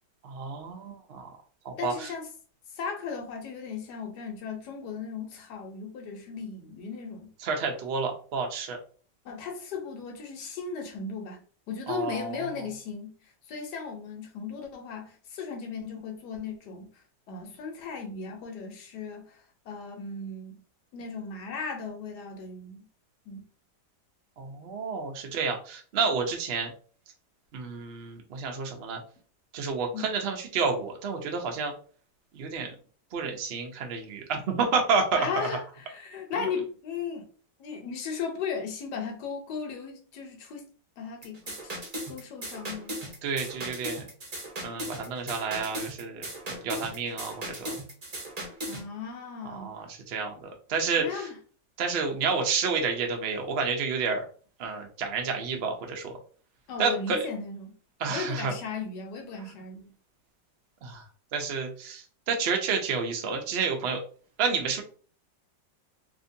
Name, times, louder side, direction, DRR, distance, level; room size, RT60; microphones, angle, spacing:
voice 1, 0.2-1.3 1.6-2.1 7.4-8.8 11.9-12.5 24.4-26.7 27.5-29.0 29.5-31.7 32.3-32.7 33.1-35.5 43.2-44.1 44.6-47.8 49.4-51.2 51.8-54.2 54.6-56.2 56.8-57.3 58.0-58.5 60.8-61.0 61.3-64.0 64.4-64.8, right 5 dB, 85° right, 0.5 m, -30 dB
voice 2, 1.8-2.3 2.7-7.3 9.2-13.1 13.5-16.9 17.3-20.6 20.9-22.9 23.3-23.5 29.9-30.1 35.2-37.3 37.6-40.7 41.0-41.7 42.1-43.0 48.7-49.7 51.0-51.4 56.7-57.8 58.1-59.9, left 5 dB, 70° left, 1.3 m, -36 dB
sound 1, 41.2-48.8, right 1 dB, 40° right, 0.6 m, -37 dB
2.9 x 2.6 x 2.6 m
omnidirectional pair, 1.9 m